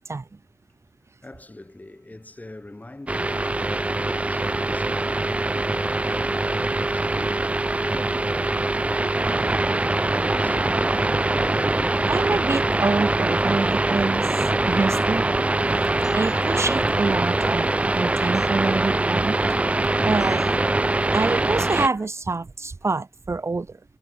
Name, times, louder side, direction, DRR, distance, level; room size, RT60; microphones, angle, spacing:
voice 1, 1.2-12.3 20.0-20.4 21.9-22.1, left 2 dB, 25° left, 6.6 m, -44 dB
sound 1, 3.1-21.9, right 2 dB, 20° right, 0.3 m, -23 dB
voice 2, 12.1-14.3 14.7-15.3 16.1-19.4 20.0-20.4 21.1-23.8, right 3 dB, 50° right, 1.4 m, -26 dB
sound 2, 15.7-16.9 18.3-18.5 20.2-20.6, left 4 dB, 55° left, 4.0 m, -43 dB
wide cardioid pair, 85°, 6 cm